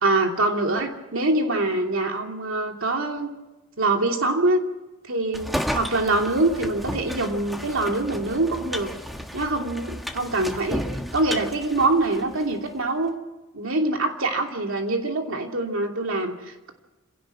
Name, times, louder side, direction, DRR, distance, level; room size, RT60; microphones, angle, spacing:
voice 1, 0.0-3.3 3.8-4.6 5.0-8.9 9.3-10.9 11.1-13.1 13.5-16.7, right 2 dB, 70° right, 3 dB, 2.9 m, -24 dB
sound 1, 5.3-12.5, equal, ahead, 1.5 m, -33 dB
26.5 x 17.0 x 6.2 m, 1.1 s
head